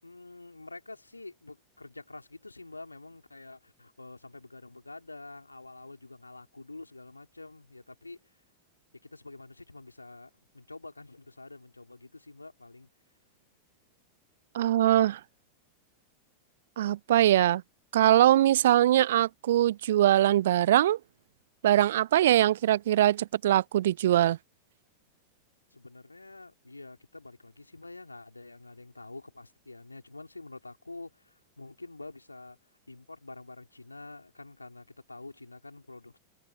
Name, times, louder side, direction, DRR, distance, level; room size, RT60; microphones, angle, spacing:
voice 1, 0.0-8.3 9.0-12.9 25.7-32.6 32.9-36.2, left 2 dB, 80° left, 4.9 m, -47 dB
voice 2, 14.5-15.2 16.8-17.6 17.9-21.0 21.6-24.4, right 12 dB, 60° right, 0.6 m, -22 dB
figure-of-eight pair, 90°, 0 cm